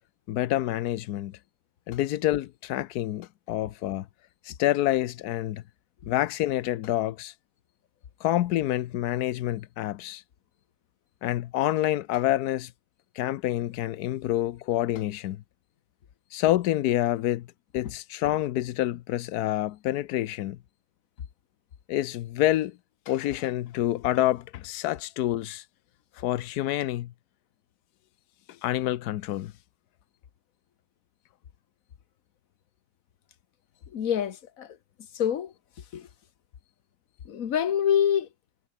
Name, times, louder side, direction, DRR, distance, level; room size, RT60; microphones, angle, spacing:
voice 1, 0.3-1.4 1.9-4.1 4.4-5.6 6.1-7.3 8.2-10.2 11.2-12.7 13.2-15.4 16.3-17.5 17.7-20.6 21.9-22.8 23.1-25.6 26.2-27.1 28.6-29.5, left 14 dB, 85° left, 0.8 m, -27 dB
voice 2, 33.9-34.8 35.1-35.5 35.9-36.1 37.2-38.3, left 9 dB, 45° left, 1.3 m, -26 dB
omnidirectional pair, 2.4 m